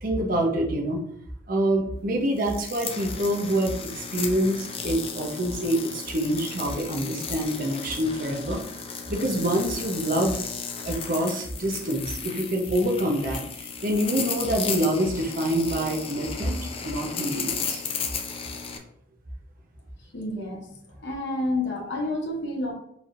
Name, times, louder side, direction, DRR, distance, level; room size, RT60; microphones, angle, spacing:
voice 1, 0.0-1.0 1.5-8.6 9.1-10.4 10.8-17.8, right 1 dB, 50° right, 1 dB, 0.8 m, -26 dB
sound 1, 2.4-18.8, left 6 dB, 30° left, 0.4 m, -35 dB
voice 2, 20.1-20.7 21.0-22.7, left 2 dB, 75° left, -1 dB, 0.9 m, -29 dB
4.4 x 3.4 x 2.5 m, 0.72 s
head